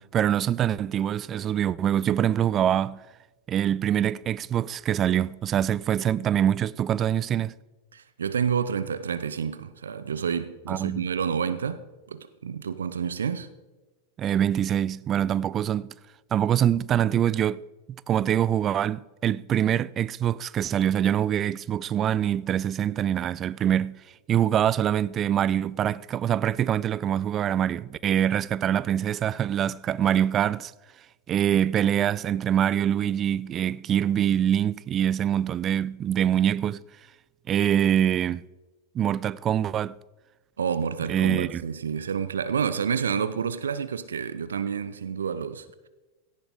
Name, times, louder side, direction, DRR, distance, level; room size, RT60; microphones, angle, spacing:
voice 1, 0.0-3.0 3.5-7.5 10.7-11.0 14.2-15.9 16.3-17.7 18.1-23.9 24.3-30.7 31.3-36.8 37.5-38.4 38.9-40.0 41.1-41.6, right 10 dB, 30° right, 0.3 m, -24 dB
voice 2, 7.9-13.5 40.6-45.9, right 7 dB, 70° right, 0.6 m, -29 dB
17.0 x 14.5 x 3.7 m
figure-of-eight pair, 90°, 0 cm